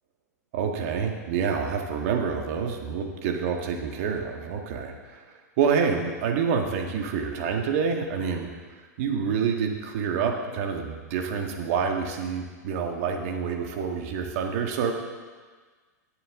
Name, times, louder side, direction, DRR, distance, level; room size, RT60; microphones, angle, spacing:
voice 1, 0.5-5.2 5.6-8.5 9.0-14.9, right 6 dB, 55° right, 3 dB, 1.8 m, -27 dB
20.5 x 7.0 x 3.8 m, 1.4 s
hypercardioid pair, 105°, 9 cm